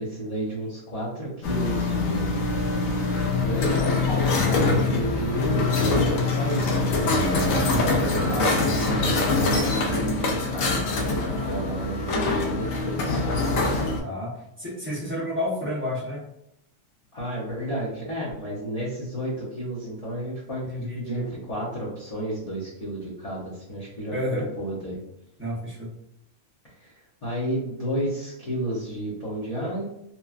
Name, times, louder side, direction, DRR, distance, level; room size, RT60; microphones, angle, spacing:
voice 1, 0.0-2.3 2.9-3.1 3.3-7.0 7.7-13.3 17.1-25.0 26.8-29.8, right 1 dB, 35° left, -8 dB, 0.7 m, -32 dB
sound 1, 1.4-14.0, left 3 dB, 85° left, 1.0 m, -24 dB
voice 2, 7.5-7.9 14.0-16.2 20.6-21.2 24.1-24.5 25.4-25.9, left 1 dB, 10° right, -7 dB, 0.7 m, -30 dB
3.0 x 2.2 x 2.4 m, 0.81 s
omnidirectional pair, 1.4 m